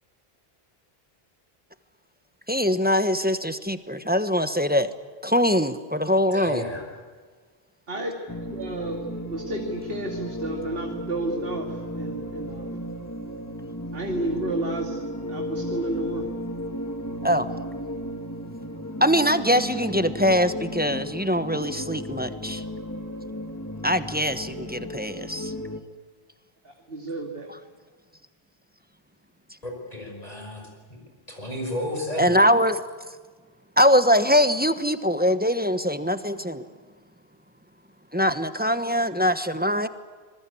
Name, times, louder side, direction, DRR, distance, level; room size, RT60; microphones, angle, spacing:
voice 1, 2.5-4.9 5.2-6.6 17.2-17.5 19.0-22.6 23.8-25.5 32.2-32.8 33.8-36.6 38.1-39.9, equal, 10° right, 10 dB, 1.1 m, -22 dB
voice 2, 6.3-6.8 29.6-30.7 31.3-32.4, left 1 dB, 40° left, 1 dB, 5.7 m, -32 dB
voice 3, 7.9-12.8 13.9-15.0 15.3-16.3 26.6-27.5, right 2 dB, 65° right, 2 dB, 2.7 m, -32 dB
sound 1, 8.3-25.8, equal, 15° left, 1.7 m, -34 dB
27.0 x 21.5 x 8.5 m, 1.5 s
omnidirectional pair, 1.0 m